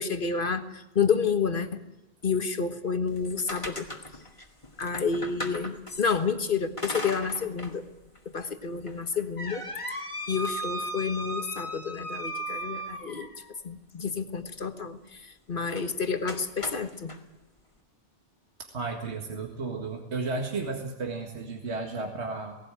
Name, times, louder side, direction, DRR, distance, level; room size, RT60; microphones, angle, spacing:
voice 1, 0.0-1.8 2.2-3.9 4.8-7.8 8.3-9.6 10.3-13.3 13.6-17.1, left 5 dB, 45° left, 8 dB, 1.6 m, -29 dB
sound 1, 3.1-6.2 6.8-7.8 8.1-8.2 8.9-13.5 15.7-15.9 16.3-17.2, equal, 25° left, 2.2 m, -37 dB
voice 2, 18.6-22.6, right 3 dB, 65° right, 2 dB, 2.2 m, -33 dB
18.5 x 17.0 x 9.0 m, 0.97 s
omnidirectional pair, 1.2 m